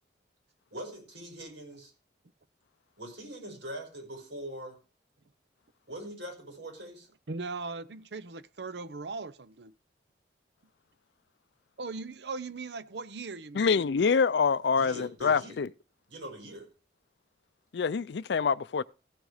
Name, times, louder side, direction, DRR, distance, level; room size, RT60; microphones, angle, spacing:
voice 1, 0.7-1.9 3.0-4.8 5.9-7.1 14.8-15.6 16.1-16.7, right 1 dB, 85° right, 5.4 m, -42 dB
voice 2, 7.3-9.7 11.8-13.8, right 3 dB, 70° right, 0.7 m, -39 dB
voice 3, 13.5-15.7 17.7-18.8, left 5 dB, 75° left, 0.4 m, -26 dB
15.5 x 6.5 x 4.9 m
head